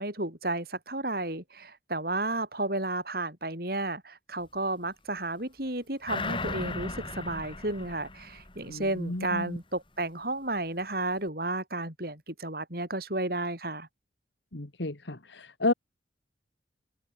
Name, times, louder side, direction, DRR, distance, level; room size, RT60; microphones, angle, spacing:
voice 1, 0.0-13.9, right 2 dB, 55° right, 7.9 m, -32 dB
sound 1, 6.1-9.0 9.4-9.5, left 3 dB, 25° left, 5.4 m, -37 dB
voice 2, 9.0-9.4 14.5-15.7, left 2 dB, 75° left, 1.9 m, -31 dB
head